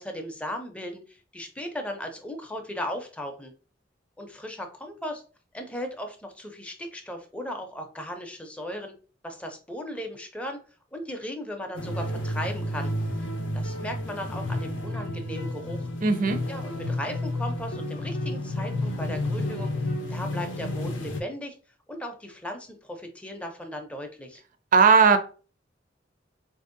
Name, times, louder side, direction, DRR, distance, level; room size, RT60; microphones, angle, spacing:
voice 1, 0.0-3.5 4.2-5.2 5.5-8.9 9.2-10.6 10.9-12.9 13.5-15.9 16.5-19.7 20.1-21.5 21.9-24.4, left 1 dB, 5° left, 0.5 m, -36 dB
sound 1, 11.7-21.2, left 1 dB, 85° left, 0.6 m, -31 dB
voice 2, 16.0-16.4 24.7-25.2, right 5 dB, 45° right, 0.4 m, -17 dB
3.9 x 2.6 x 2.5 m
head